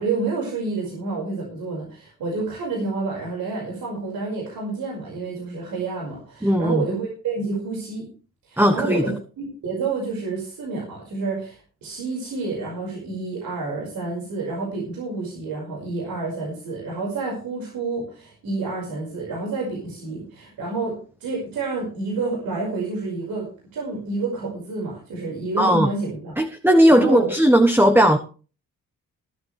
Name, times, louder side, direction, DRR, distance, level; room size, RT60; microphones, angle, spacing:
voice 1, 0.0-8.1 8.5-20.9 21.2-26.4 26.9-27.3, right 3 dB, 80° right, -2 dB, 5.7 m, -29 dB
voice 2, 6.4-6.8 8.6-9.0 25.6-25.9 26.4-28.2, equal, 5° right, 7 dB, 1.3 m, -17 dB
20.0 x 9.8 x 3.4 m, 0.37 s
supercardioid pair, 50°, 34 cm